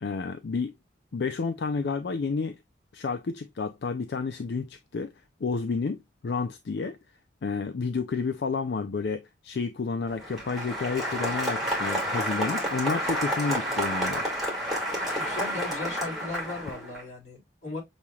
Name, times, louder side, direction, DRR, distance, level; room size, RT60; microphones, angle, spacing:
voice 1, 0.0-0.7 1.1-2.6 2.9-5.1 5.4-7.0 7.4-14.2, left 4 dB, 60° left, 0.4 m, -30 dB
Applause, 10.1-17.0, equal, ahead, 1.9 m, -30 dB
voice 2, 15.1-17.8, left 3 dB, 40° left, 2.9 m, -37 dB
6.9 x 3.1 x 2.3 m
head